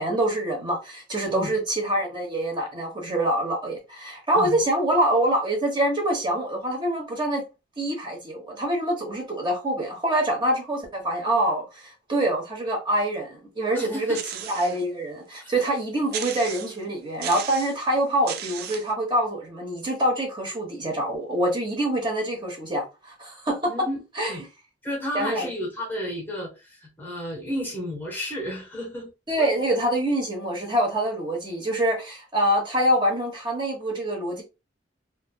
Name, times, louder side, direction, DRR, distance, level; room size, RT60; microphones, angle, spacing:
voice 1, 0.0-7.4 7.8-14.2 14.5-23.7 24.1-24.4 25.1-25.5 29.3-34.4, right 1 dB, 25° right, 1.0 m, -25 dB
voice 2, 13.7-14.2 15.4-15.5 23.6-24.0 24.3-24.4 24.8-29.1 29.4-29.5, equal, 10° left, 0.8 m, -32 dB
sound 1, 14.1-14.8 15.4-15.5 16.1-16.8 17.2-17.8 18.3-18.9, right 9 dB, 60° right, 0.4 m, -35 dB
3.3 x 2.5 x 2.2 m
head